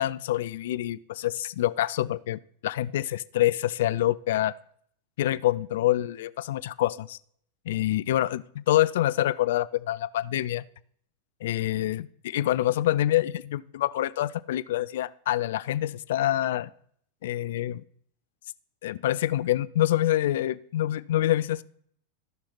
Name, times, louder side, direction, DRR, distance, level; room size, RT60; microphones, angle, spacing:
voice 1, 0.0-4.5 5.2-7.2 7.7-10.6 11.4-16.7 17.2-17.8 18.8-21.6, left 13 dB, 55° left, 16 dB, 0.4 m, -26 dB
14.0 x 5.8 x 4.1 m, 0.62 s
figure-of-eight pair, 90°, 0 cm